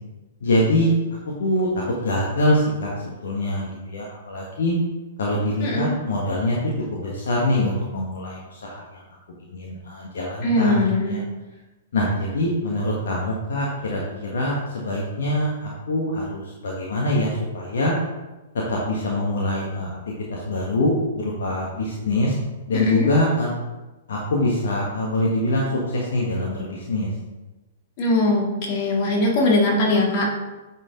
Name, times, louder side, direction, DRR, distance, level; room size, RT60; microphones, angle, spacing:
voice 1, 0.4-0.9 1.4-2.9 3.2-4.7 5.2-6.6 6.9-9.0 9.5-11.2 11.9-17.9 18.5-22.3 22.7-23.5 24.1-27.1, left 1 dB, 60° left, -3 dB, 1.4 m, -24 dB
voice 2, 5.6-5.9 10.4-11.2 22.7-23.1 28.0-30.3, left 2 dB, 40° left, -2 dB, 1.9 m, -21 dB
8.7 x 4.5 x 3.8 m, 1.1 s
figure-of-eight pair, 110°, 0 cm